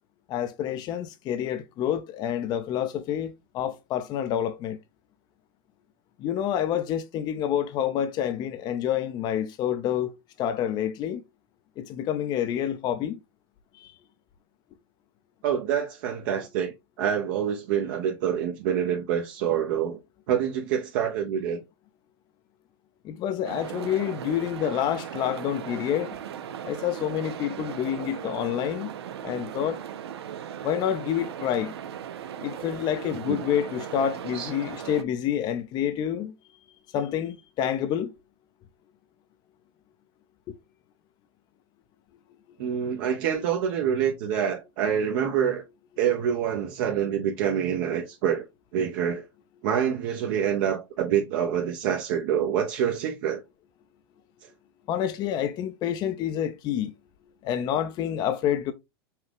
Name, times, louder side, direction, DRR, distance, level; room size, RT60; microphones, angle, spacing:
voice 1, 0.3-4.8 6.2-10.1 10.4-11.2 11.8-13.2 13.8-13.9 23.0-26.1 26.6-28.9 29.2-29.8 30.6-31.7 32.4-36.3 36.9-38.1 42.7-42.8 54.9-56.9 57.4-58.7, left 10 dB, 35° left, 0.5 m, -28 dB
voice 2, 15.4-20.0 20.3-21.6 27.5-27.6 33.3-33.4 34.3-34.5 42.6-45.6 46.0-48.4 48.7-49.2 49.6-53.4, right 8 dB, 55° right, 0.8 m, -26 dB
sound 1, 23.4-35.0, right 9 dB, 85° right, 0.6 m, -38 dB
5.6 x 2.3 x 3.4 m
hypercardioid pair, 130°, 13 cm